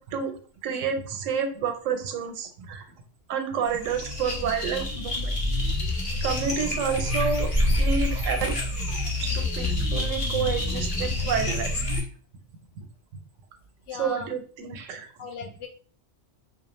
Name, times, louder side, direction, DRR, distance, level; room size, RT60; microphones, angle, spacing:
voice 1, 0.6-2.8 3.3-5.3 5.8-8.5 9.2-11.8 13.9-15.1, right 6 dB, 90° right, 6 dB, 0.9 m, -29 dB
sound 1, 3.6-12.0, left 1 dB, 35° left, 0.6 m, -27 dB
voice 2, 13.9-14.3 15.2-15.7, left 5 dB, 75° left, 3 dB, 0.9 m, -37 dB
2.4 x 2.2 x 2.9 m, 0.43 s
omnidirectional pair, 1.3 m